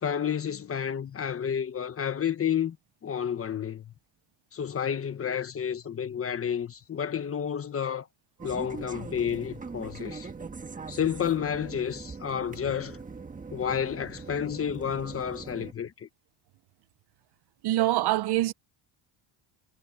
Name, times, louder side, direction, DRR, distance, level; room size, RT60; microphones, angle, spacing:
voice 1, 0.0-2.8 3.0-3.9 4.5-8.1 8.4-10.3 10.9-13.0 13.5-16.1, left 8 dB, 30° left, 1.1 m, -30 dB
sound 1, 8.4-15.7, right 4 dB, 15° right, 1.4 m, -41 dB
voice 2, 17.6-18.5, right 16 dB, 55° right, 0.7 m, -24 dB
cardioid pair, 150°, 49 cm